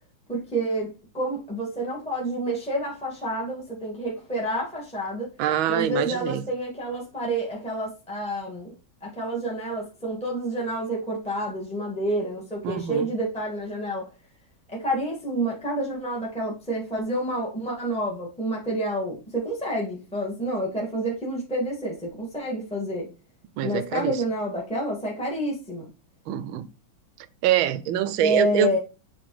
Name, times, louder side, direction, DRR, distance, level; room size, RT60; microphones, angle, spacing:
voice 1, 0.3-5.3 5.7-8.7 9.0-14.1 14.7-23.1 23.6-25.9 28.2-28.8, right 1 dB, 5° left, 1.7 m, -29 dB
voice 2, 5.4-6.4 12.6-13.1 23.6-24.2 26.3-26.6 27.4-28.8, right 11 dB, 85° right, 1.4 m, -25 dB
8.0 x 3.8 x 3.2 m
omnidirectional pair, 2.2 m